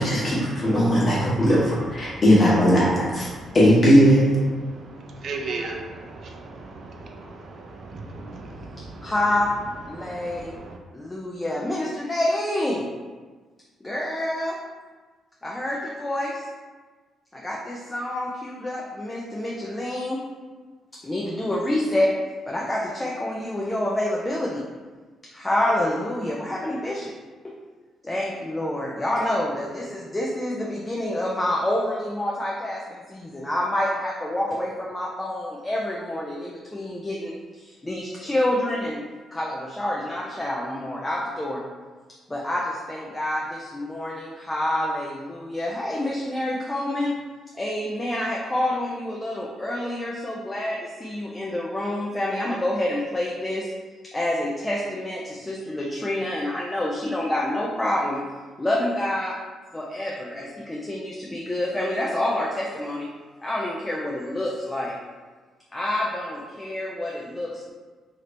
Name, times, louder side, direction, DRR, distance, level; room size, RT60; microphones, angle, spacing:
voice 1, 0.0-3.3 3.5-4.3, equal, 40° left, -7 dB, 1.2 m, -18 dB
voice 2, 4.8-9.1 9.9-10.2, right 3 dB, 55° right, 1 dB, 0.4 m, -36 dB
voice 3, 9.0-9.5 9.9-10.6 10.9-12.9 13.8-14.6 15.4-16.5 17.3-20.2 21.0-22.2 22.5-24.6 25.3-27.1 27.4-27.5 28.0-39.0 39.3-41.6 42.3-47.2 47.5-53.7 54.1-58.2 58.6-59.4 59.7-63.1 63.4-64.9 65.7-67.7, left 1 dB, 15° left, -3 dB, 0.4 m, -27 dB
2.8 x 2.5 x 3.2 m, 1.4 s
cardioid pair, 90°, 0 cm